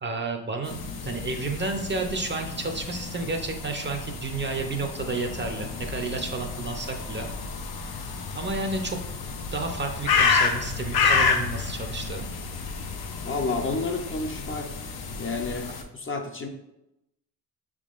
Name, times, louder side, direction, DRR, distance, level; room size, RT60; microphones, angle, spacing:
voice 1, 0.0-7.3 8.3-9.0 9.5-12.2, right 3 dB, 30° right, 4 dB, 0.6 m, -31 dB
sound 1, 0.6-15.8, left 5 dB, 70° left, 0.8 m, -30 dB
voice 2, 13.2-14.9 15.2-16.5, left 3 dB, 30° left, 4 dB, 0.6 m, -30 dB
5.9 x 3.7 x 2.5 m, 0.89 s
cardioid pair, 70°, 40 cm